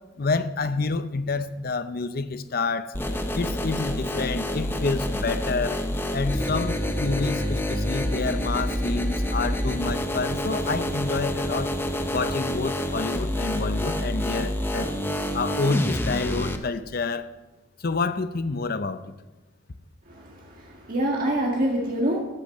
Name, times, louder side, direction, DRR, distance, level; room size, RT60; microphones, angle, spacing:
voice 1, 0.2-2.9 3.3-5.8 6.1-11.7 12.1-14.9 15.3-17.3 17.8-19.1, left 3 dB, 50° left, 12 dB, 0.6 m, -28 dB
sound 1, 2.9-16.6, equal, 10° left, 0.7 m, -28 dB
voice 2, 20.1-22.2, right 1 dB, 45° right, -1 dB, 1.6 m, -26 dB
12.0 x 6.5 x 7.3 m, 1.1 s
head